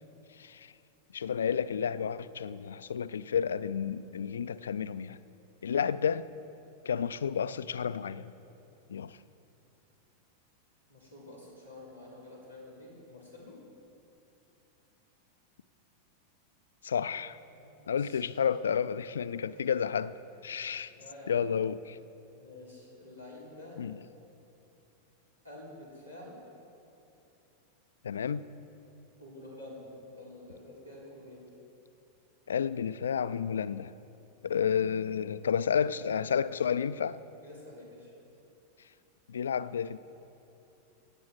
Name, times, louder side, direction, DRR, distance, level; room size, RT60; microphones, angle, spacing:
voice 1, 0.3-0.7 1.1-5.2 5.6-6.3 6.9-8.3 8.9-9.2 16.8-17.4 17.9-20.9 21.3-22.0 23.8-24.0 28.0-28.4 32.5-33.9 34.4-37.2 39.3-40.0, left 7 dB, 65° left, 16 dB, 0.4 m, -31 dB
voice 2, 10.9-13.6 17.5-18.2 20.9-21.4 22.4-23.8 25.4-26.4 29.2-31.5 37.4-38.1, left 1 dB, 85° right, -5 dB, 3.9 m, -49 dB
16.5 x 8.3 x 6.2 m, 2.8 s
figure-of-eight pair, 90°, 0 cm